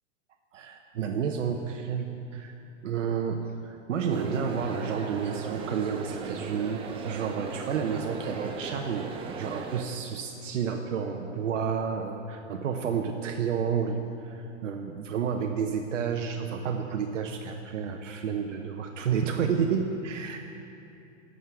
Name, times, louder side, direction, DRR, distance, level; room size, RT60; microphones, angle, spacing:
voice 1, 0.5-2.6 2.8-20.4, right 6 dB, 85° right, 4 dB, 0.9 m, -30 dB
sound 1, 4.1-9.8, right 5 dB, 15° right, 0.5 m, -38 dB
11.0 x 6.4 x 6.9 m, 2.7 s
hypercardioid pair, 135°, 37 cm